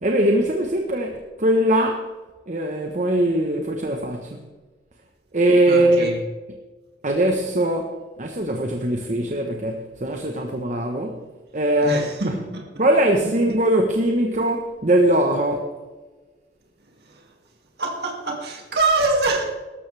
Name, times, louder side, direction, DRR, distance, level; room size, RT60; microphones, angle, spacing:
voice 1, 0.0-2.1 2.5-4.4 5.3-6.1 7.0-11.2 11.5-12.1 12.8-15.7, right 1 dB, 45° right, 1.1 m, -21 dB
voice 2, 5.7-6.2 11.8-12.7 13.2-13.3 17.0-17.3 17.8-19.5, right 3 dB, 65° right, 2.4 m, -25 dB
18.5 x 13.5 x 3.4 m
head